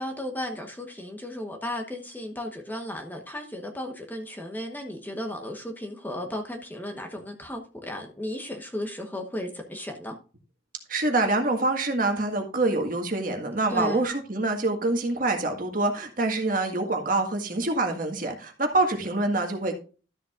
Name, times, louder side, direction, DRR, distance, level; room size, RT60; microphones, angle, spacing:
voice 1, 0.0-10.2 13.7-14.0, left 1 dB, 10° left, 1.0 m, -34 dB
voice 2, 10.9-19.7, right 2 dB, 45° right, 1.7 m, -26 dB
13.0 x 7.1 x 2.4 m
head